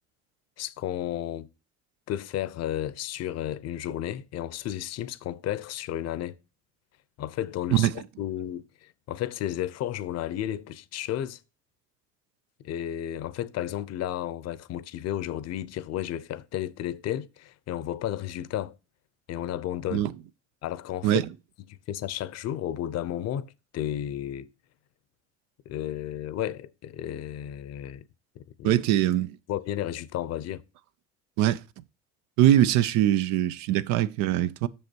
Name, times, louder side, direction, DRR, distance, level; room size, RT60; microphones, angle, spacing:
voice 1, 0.6-1.5 2.1-6.4 7.2-11.4 12.6-18.8 19.3-20.1 20.6-21.2 21.7-24.5 25.7-28.0 28.4-28.8 29.5-30.6, left 12 dB, 60° left, 0.7 m, -33 dB
voice 2, 28.6-29.3 31.4-31.6 32.4-34.7, right 12 dB, 80° right, 0.6 m, -22 dB
6.4 x 5.5 x 4.5 m
cardioid pair, 95°, 29 cm